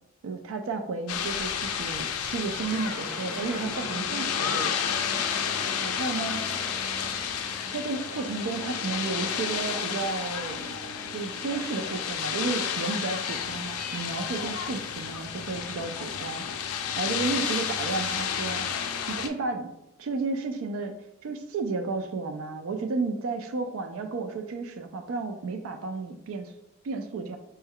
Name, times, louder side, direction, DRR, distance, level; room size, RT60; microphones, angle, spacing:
voice 1, 0.2-4.8 5.8-6.6 7.7-10.7 11.1-16.4 17.0-18.7 19.1-19.7 20.0-21.0 21.2-26.5 26.8-27.4, right 3 dB, 70° right, 6 dB, 0.4 m, -32 dB
sound 1, 1.1-19.3, left 7 dB, 90° left, 0.4 m, -31 dB
Aircraft, 2.6-12.1, right 1 dB, 10° right, 0.7 m, -43 dB
4.3 x 2.2 x 3.5 m, 0.86 s
head